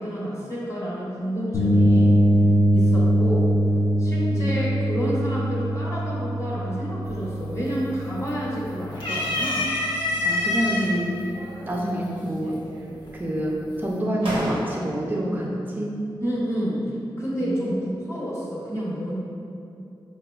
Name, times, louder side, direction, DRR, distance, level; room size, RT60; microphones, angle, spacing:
voice 1, 0.0-2.2 2.7-3.5 4.0-9.7 16.2-19.2, equal, 35° left, -7 dB, 0.7 m, -29 dB
sound 1, 1.5-9.3, right 1 dB, 55° left, 0.3 m, -22 dB
sound 2, 7.1-7.5 7.8-8.5 8.9-10.9 11.7-11.8 13.1-13.5, left 2 dB, 85° left, 0.8 m, -26 dB
voice 2, 10.2-11.1 11.7-12.6 13.1-16.0 17.4-17.8, right 1 dB, 20° right, -2 dB, 0.4 m, -27 dB
sound 3, 10.4-11.0 11.3-12.1 12.4-13.2 13.8-13.9 14.2-15.2, right 1 dB, 90° right, 0.6 m, -34 dB
4.8 x 2.2 x 2.2 m, 2.5 s
wide cardioid pair, 75°, 9 cm